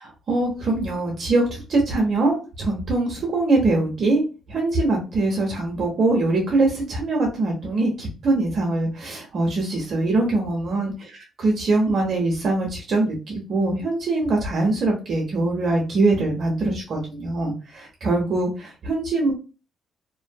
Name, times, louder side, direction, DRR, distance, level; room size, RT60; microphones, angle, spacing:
voice 1, 0.3-10.9 11.4-19.3, right 2 dB, 55° right, -1 dB, 0.8 m, -23 dB
2.6 x 2.4 x 2.3 m, 0.32 s
cardioid pair, 90°, 0 cm